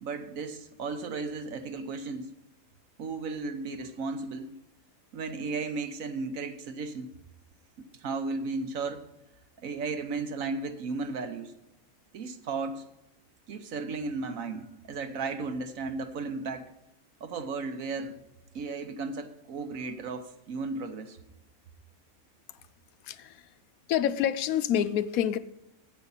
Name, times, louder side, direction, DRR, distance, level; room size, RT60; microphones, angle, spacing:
voice 1, 0.0-2.3 3.0-4.6 5.1-7.1 7.8-9.0 9.6-11.5 12.1-12.8 13.5-16.7 17.2-18.2 18.5-21.2, right 4 dB, 70° right, 1.3 m, -35 dB
voice 2, 23.0-23.5 23.9-25.4, left 10 dB, 75° left, 1.0 m, -27 dB
9.0 x 8.2 x 5.4 m
omnidirectional pair, 1.5 m